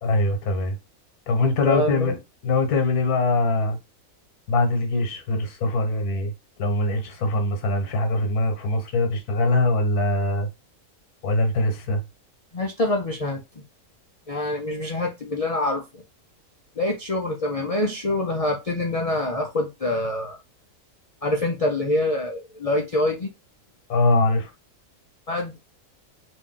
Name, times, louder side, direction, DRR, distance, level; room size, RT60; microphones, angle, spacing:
voice 1, 0.0-0.7 1.3-2.1 2.4-3.8 4.5-6.3 6.6-10.5 11.2-12.0 23.9-24.5, left 2 dB, 85° left, 1.5 m, -22 dB
voice 2, 1.6-2.2 12.5-13.4 14.3-16.0 16.8-20.4 21.2-23.3 25.3-25.6, left 1 dB, 60° left, 0.3 m, -25 dB
3.0 x 2.6 x 3.7 m
omnidirectional pair, 1.5 m